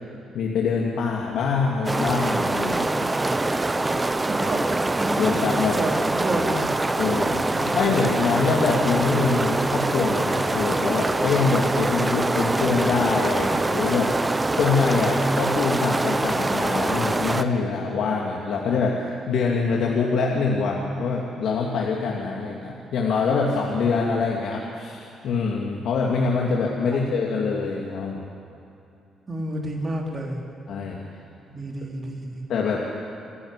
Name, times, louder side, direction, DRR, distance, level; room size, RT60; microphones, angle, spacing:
voice 1, 0.3-3.1 5.2-5.8 7.0-28.2 30.7-31.0 32.5-32.8, left 4 dB, 75° left, -2 dB, 2.7 m, -24 dB
sound 1, 1.8-17.4, right 2 dB, 20° right, 1.0 m, -24 dB
voice 2, 3.1-7.0 7.5-7.9 26.9-27.0 29.3-30.4 31.5-32.4, right 1 dB, 35° right, 0 dB, 4.5 m, -31 dB
28.0 x 11.5 x 10.0 m, 2.7 s
cardioid pair, 90°, 0 cm